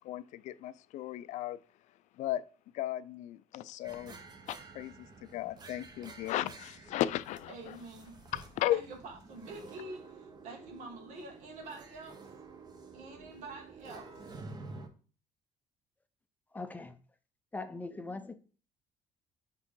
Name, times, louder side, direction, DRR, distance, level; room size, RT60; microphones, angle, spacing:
voice 1, 0.0-1.6 2.2-2.4 2.7-4.2 4.5-4.9 5.2-7.7 8.3-8.8, left 13 dB, 70° left, 0.4 m, -35 dB
sound 1, 3.8-14.9, right 4 dB, 35° right, 1.0 m, -50 dB
voice 2, 7.5-8.2 8.7-12.2 12.9-14.1, right 2 dB, 70° right, 2.1 m, -47 dB
voice 3, 16.5-17.0 17.5-18.3, left 3 dB, 10° left, 0.6 m, -40 dB
8.9 x 3.7 x 3.8 m
cardioid pair, 130°, 13 cm